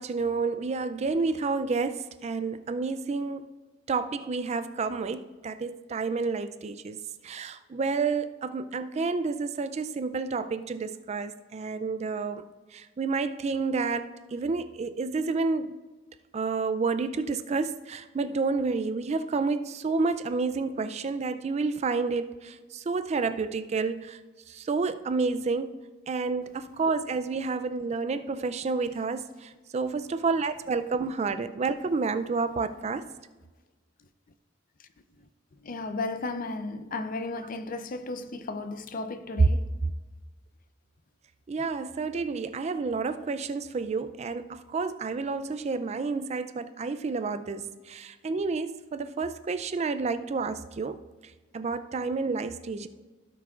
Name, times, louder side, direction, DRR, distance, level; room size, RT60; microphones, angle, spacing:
voice 1, 0.0-3.4 3.9-7.0 7.2-12.5 12.7-15.8 16.3-24.2 24.5-25.8 26.1-33.0 41.5-51.0 51.5-52.9, right 4 dB, 35° right, 0.4 m, -30 dB
voice 2, 35.6-39.7, left 3 dB, 45° left, 0.5 m, -34 dB
17.0 x 6.0 x 2.4 m
head